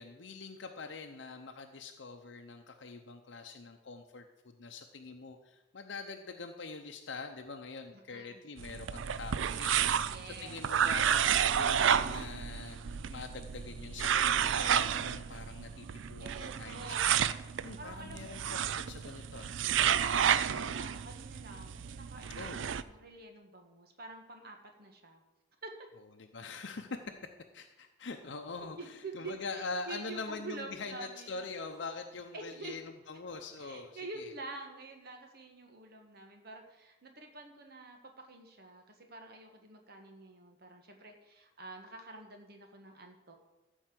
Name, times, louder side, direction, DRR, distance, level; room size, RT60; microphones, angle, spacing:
voice 1, 0.0-17.3 17.6-19.8 22.3-22.6 26.2-26.9 27.5-34.3, left 4 dB, 65° left, 4 dB, 0.7 m, -44 dB
voice 2, 7.9-8.4 10.1-10.7 16.2-17.2 17.8-19.1 20.3-25.2 25.6-25.7 28.6-31.4 32.3-32.8 33.6-43.3, right 2 dB, 55° right, 4 dB, 1.5 m, -48 dB
sound 1, 8.6-22.8, right 8 dB, 75° right, 0.4 m, -31 dB
13.5 x 4.6 x 7.6 m, 1.0 s
head